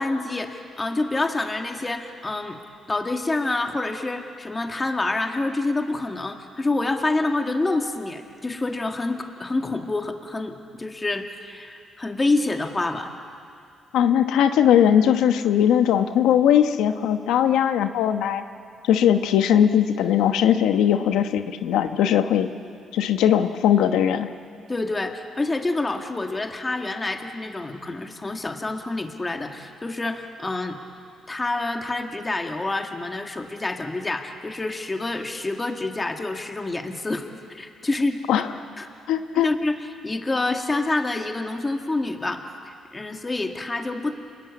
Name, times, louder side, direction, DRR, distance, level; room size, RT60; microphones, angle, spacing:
voice 1, 0.0-2.6 2.9-13.1 24.7-30.8 31.3-38.4 38.8-38.9 39.4-39.8 40.0-44.1, left 2 dB, 20° left, 4 dB, 2.0 m, -27 dB
voice 2, 13.9-18.4 18.8-22.5 22.9-24.3 38.3-38.5 39.1-39.5, left 9 dB, 90° left, 8 dB, 1.1 m, -19 dB
28.5 x 21.0 x 8.5 m, 2.4 s
cardioid pair, 90°, 0 cm